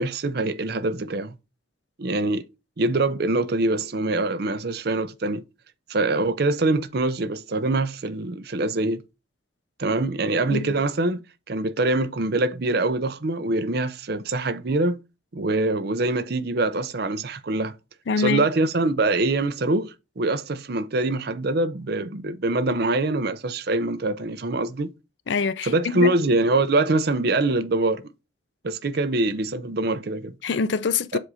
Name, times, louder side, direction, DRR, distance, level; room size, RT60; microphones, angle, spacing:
voice 1, 0.0-1.4 2.0-2.5 2.8-5.4 5.9-9.0 9.8-15.0 15.3-17.7 18.2-24.9 25.6-28.0 28.6-30.4 31.1-31.2, right 2 dB, 55° right, 0.6 m, -24 dB
voice 2, 18.1-18.5 25.3-26.1 30.4-31.2, left 5 dB, 70° left, 0.5 m, -25 dB
7.4 x 2.7 x 4.8 m
head